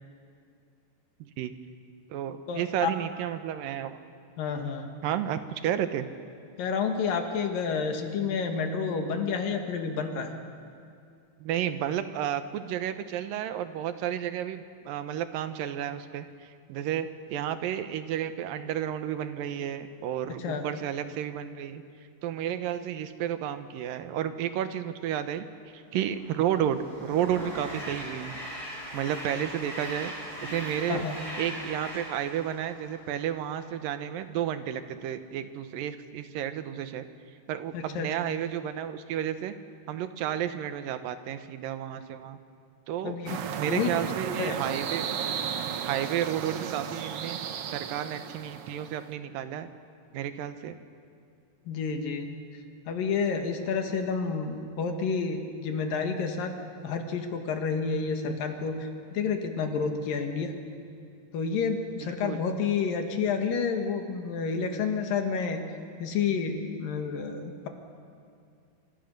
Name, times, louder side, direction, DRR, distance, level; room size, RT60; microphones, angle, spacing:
voice 1, 1.2-1.5 2.1-4.0 5.0-6.1 11.4-21.8 22.2-25.5 25.7-28.4 28.9-30.1 30.4-31.0 31.4-37.1 37.5-39.5 39.9-42.4 42.9-43.2 43.6-45.1 45.8-47.4 47.7-49.7 50.1-50.8 62.0-62.4, right 10 dB, 90° right, 10 dB, 2.7 m, -32 dB
voice 2, 2.5-2.9 4.4-4.9 6.6-10.3 20.3-20.7 30.9-31.2 37.7-38.1 43.0-43.4 43.7-44.6 51.7-52.3 52.9-56.5 56.8-60.5 61.3-65.6 66.0-67.7, left 5 dB, 85° left, 4 dB, 3.6 m, -30 dB
Train, 26.1-33.5, equal, 25° right, 6.8 m, -40 dB
sound 1, 43.3-49.1, right 8 dB, 65° right, 1.4 m, -34 dB
26.5 x 26.0 x 6.6 m, 2.4 s
omnidirectional pair, 3.9 m